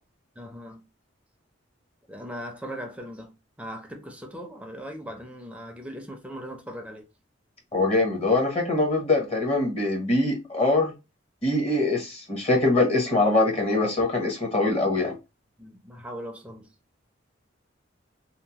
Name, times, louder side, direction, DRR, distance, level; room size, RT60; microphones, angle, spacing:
voice 1, 0.4-0.8 2.1-3.3 3.6-7.0 15.6-16.7, equal, 5° right, 0.5 m, -39 dB
voice 2, 7.7-10.9 11.4-15.2, left 2 dB, 30° left, 0.7 m, -23 dB
3.0 x 2.0 x 2.7 m
head